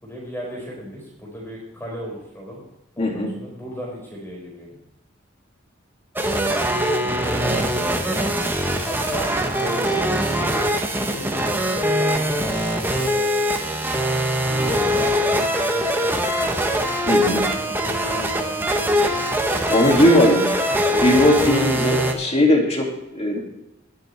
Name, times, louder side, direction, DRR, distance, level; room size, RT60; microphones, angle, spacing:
voice 1, 0.0-2.6 3.0-4.8 6.2-8.5 8.8-9.3 9.6-9.8 10.9-11.3 11.7-12.6 12.9-13.9 14.4-16.6 17.5-19.3, equal, 10° left, -3 dB, 4.9 m, -35 dB
voice 2, 3.0-3.3 17.1-17.5 19.7-20.5 20.8-23.4, left 1 dB, 35° left, 0 dB, 2.6 m, -18 dB
sound 1, 6.2-22.1, equal, 10° right, 1.2 m, -22 dB
20.5 x 7.5 x 3.4 m, 0.90 s
head